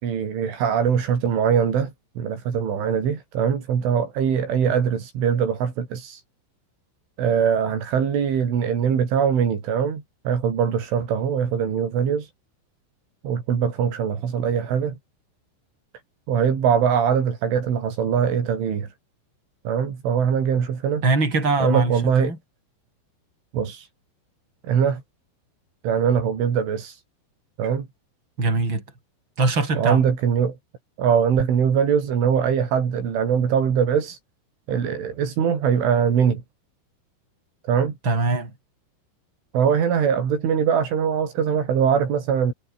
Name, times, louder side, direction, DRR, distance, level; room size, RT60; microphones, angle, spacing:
voice 1, 0.0-6.2 7.2-12.3 13.2-15.0 16.3-18.9 19.6-21.0 21.6-22.3 23.5-23.9 24.6-25.0 25.8-27.0 27.6-27.9 29.8-30.6 31.0-34.2 34.7-36.4 37.7-37.9 39.5-42.5, right 7 dB, 80° right, 6.9 m, -22 dB
voice 2, 21.0-21.9 22.2-22.4 28.4-28.8 29.4-30.0 38.0-38.5, right 3 dB, 25° right, 8.1 m, -21 dB
omnidirectional pair, 5.5 m